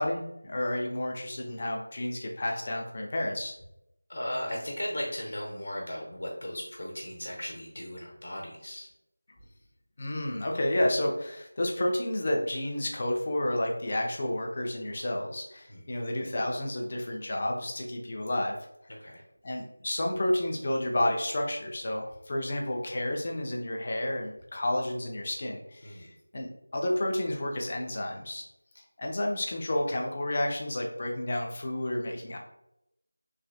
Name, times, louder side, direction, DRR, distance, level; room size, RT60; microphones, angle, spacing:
voice 1, 0.0-3.5 10.0-18.6 19.4-26.1 26.3-28.5 28.8-32.4, left 1 dB, 30° left, 1 dB, 0.5 m, -31 dB
voice 2, 4.1-8.9 15.7-15.8 18.9-19.2 25.8-26.1, equal, 65° left, -1 dB, 0.9 m, -37 dB
3.2 x 2.6 x 2.6 m, 0.83 s
figure-of-eight pair, 175°, 0 cm